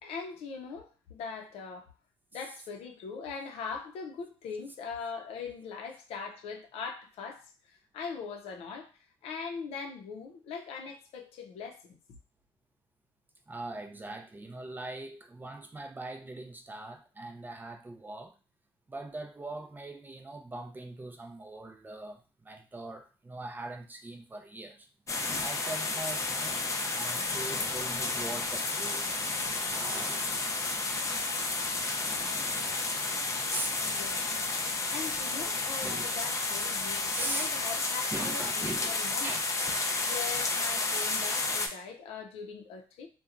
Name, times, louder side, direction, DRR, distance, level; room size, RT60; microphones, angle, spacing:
voice 1, 0.0-1.9 2.3-8.9 9.2-12.0 33.7-34.3 34.9-39.4 40.0-43.1, left 5 dB, 80° left, 3 dB, 0.6 m, -41 dB
voice 2, 13.5-18.4 18.9-24.9 25.4-26.6 26.9-34.0 35.8-36.1 37.1-37.6 38.1-38.9 39.2-39.5, right 2 dB, 20° right, 4 dB, 0.4 m, -41 dB
sound 1, 25.1-41.7, left 3 dB, 30° left, 0.5 m, -31 dB
2.9 x 2.2 x 2.5 m, 0.35 s
cardioid pair, 90°, 10 cm